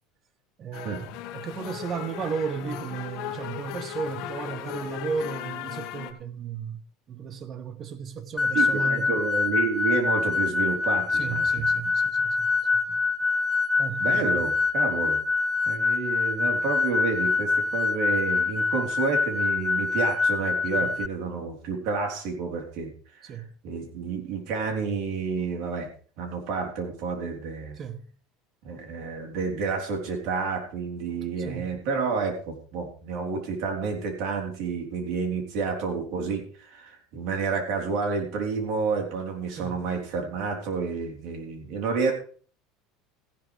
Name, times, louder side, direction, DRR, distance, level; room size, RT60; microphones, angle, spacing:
voice 1, 0.6-6.8 7.1-9.1 11.1-12.5 12.9-13.0 13.8-14.3 20.7-20.9 23.3-23.5 27.8-28.1 31.4-31.7 39.6-39.8, right 6 dB, 35° right, 1.1 m, -34 dB
sound 1, 0.7-6.1, left 12 dB, 60° left, 1.4 m, -37 dB
sound 2, 8.4-21.1, left 4 dB, 15° left, 0.4 m, -25 dB
voice 2, 8.5-11.6 14.0-15.2 15.7-25.9 26.2-27.8 28.6-42.1, right 5 dB, 65° right, 3.7 m, -30 dB
15.0 x 11.0 x 3.4 m
supercardioid pair, 135°, 0 cm